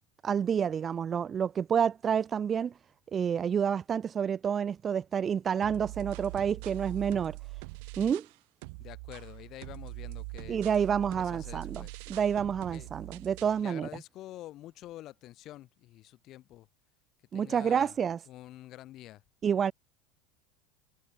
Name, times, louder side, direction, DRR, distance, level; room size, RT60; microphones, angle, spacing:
voice 1, 0.2-2.7 3.1-7.4 8.0-8.3 10.5-13.9 17.3-18.2 19.4-19.7, right 7 dB, 30° right, 0.5 m, -29 dB
sound 1, 5.6-8.4 8.6-13.6, right 30 dB, 65° right, 1.0 m, -43 dB
voice 2, 8.8-10.6 11.2-12.0 12.7-12.9 13.6-16.7 17.3-18.0 18.3-19.2, left 14 dB, 45° left, 2.9 m, -47 dB
supercardioid pair, 110°, 0 cm